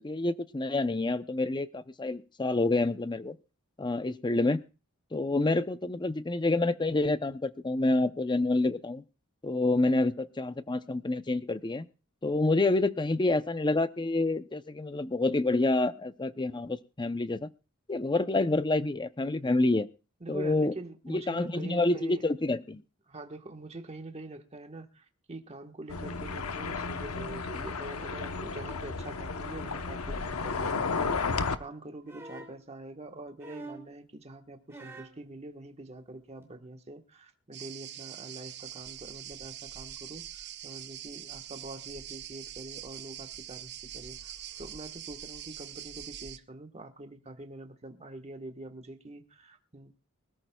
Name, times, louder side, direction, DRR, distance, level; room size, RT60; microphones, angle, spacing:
voice 1, 0.0-3.4 3.8-4.6 5.1-9.0 9.4-11.9 12.2-17.5 17.9-19.9 20.3-20.7 21.1-22.8, left 2 dB, 20° left, 12 dB, 0.6 m, -28 dB
voice 2, 20.2-22.2 23.1-44.3 44.6-50.0, right 2 dB, 30° right, 5 dB, 1.3 m, -45 dB
sound 1, 25.9-31.6, left 4 dB, 80° left, 0.9 m, -33 dB
sound 2, 32.1-32.6 33.4-33.9 34.7-35.2 36.4-36.5, right 2 dB, 10° right, 2.8 m, -45 dB
sound 3, 37.5-46.4, right 11 dB, 50° right, 0.8 m, -44 dB
24.5 x 13.5 x 2.3 m, 0.32 s
head